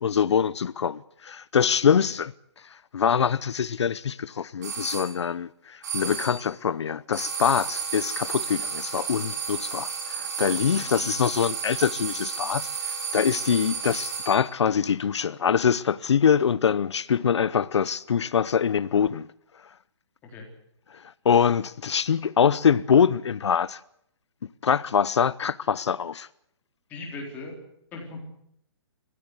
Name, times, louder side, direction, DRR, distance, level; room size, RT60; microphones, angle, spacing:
voice 1, 0.0-2.3 2.7-19.3 20.9-23.8 24.6-26.3, left 7 dB, 75° left, 0.7 m, -24 dB
sound 1, 4.6-5.1 5.8-6.5 7.1-14.5, right 6 dB, 35° right, 7.5 m, -32 dB
voice 2, 10.6-11.1 13.5-13.6 20.2-20.5 26.9-27.6 27.9-28.2, left 3 dB, 10° left, 3.8 m, -40 dB
23.5 x 15.5 x 8.2 m
hypercardioid pair, 175°, 15 cm